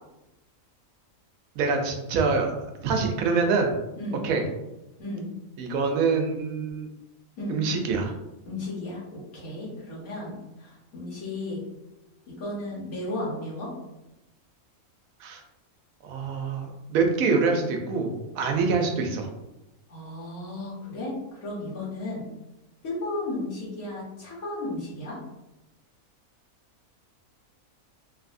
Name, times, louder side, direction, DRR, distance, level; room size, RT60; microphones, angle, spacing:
voice 1, 1.6-2.5 2.8-3.7 4.2-4.4 5.6-6.9 7.5-8.1 15.2-15.4 16.0-19.3, right 4 dB, 80° right, 3 dB, 1.0 m, -25 dB
voice 2, 8.4-10.3 10.6-11.6 12.3-13.7 19.9-22.2 22.8-25.2, left 2 dB, 85° left, -5 dB, 1.6 m, -34 dB
3.3 x 2.6 x 2.5 m, 0.93 s
omnidirectional pair, 1.5 m